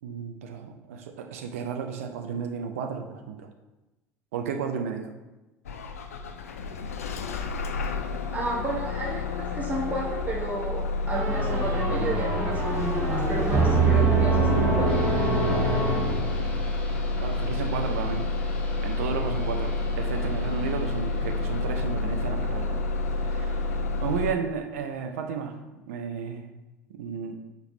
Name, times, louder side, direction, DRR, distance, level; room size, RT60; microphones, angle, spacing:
voice 1, 0.0-3.5 4.3-5.1 16.0-16.7 17.2-22.9 23.2-26.5 26.9-27.3, right 6 dB, 65° right, 5 dB, 0.5 m, -33 dB
Bus / Engine starting, 5.7-24.3, left 3 dB, 75° left, 0.4 m, -29 dB
voice 2, 8.3-14.9, right 2 dB, 20° right, -3 dB, 1.1 m, -32 dB
sound 1, 11.1-16.7, right 4 dB, 45° right, 1.8 m, -25 dB
sound 2, 14.9-24.6, left 1 dB, 15° left, 1.2 m, -43 dB
6.6 x 4.8 x 3.1 m, 1.0 s
figure-of-eight pair, 70°, 8 cm